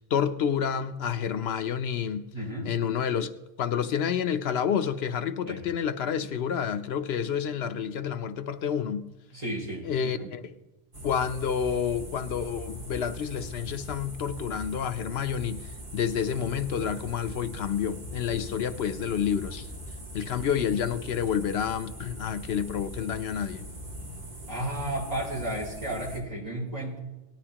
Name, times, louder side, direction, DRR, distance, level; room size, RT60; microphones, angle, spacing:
voice 1, 0.1-2.3 2.6-3.3 3.6-9.1 9.8-10.4 11.0-15.7 15.9-19.7 20.1-23.7, left 8 dB, 85° left, 0.9 m, -29 dB
voice 2, 2.3-2.7 5.5-5.6 9.3-10.3 24.5-27.0, right 1 dB, 40° right, 4.8 m, -33 dB
sound 1, 10.9-26.2, equal, 55° right, 2.1 m, -41 dB
18.5 x 12.0 x 2.9 m
omnidirectional pair, 1.0 m